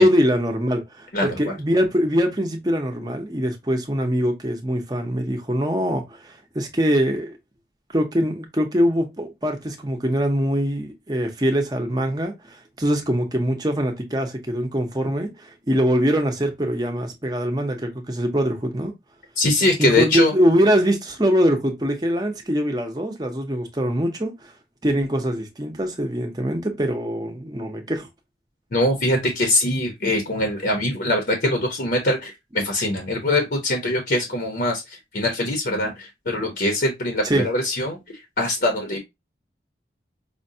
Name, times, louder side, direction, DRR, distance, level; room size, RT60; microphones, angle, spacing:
voice 1, 0.0-7.4 7.9-18.9 19.8-24.5 24.8-28.1 37.2-37.4, equal, 20° right, 0.6 m, -23 dB
voice 2, 1.1-1.5 19.4-20.3 28.7-38.0 38.4-39.0, left 1 dB, 60° left, 0.8 m, -22 dB
5.0 x 2.2 x 2.6 m
head